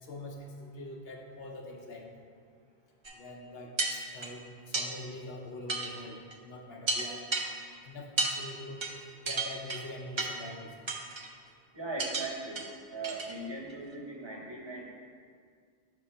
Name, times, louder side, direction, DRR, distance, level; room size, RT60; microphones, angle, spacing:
voice 1, 0.0-2.0 3.1-3.7 4.1-7.3 7.8-8.9 9.2-10.9, left 1 dB, 60° left, 0 dB, 1.0 m, -44 dB
sound 1, 3.0-3.1 3.8-4.3 4.7-4.9 5.7-5.9 6.3-6.4 6.9-7.5 8.2-8.3 8.8-8.9 9.3-9.8 10.2-10.4 10.9-11.3 12.0-12.3 12.6-12.7 13.0-13.3 13.7-13.8, right 3 dB, 45° right, 0.4 m, -32 dB
voice 2, 11.7-14.9, right 2 dB, 25° right, -2 dB, 0.9 m, -39 dB
6.3 x 3.6 x 5.5 m, 2.1 s
omnidirectional pair, 1.2 m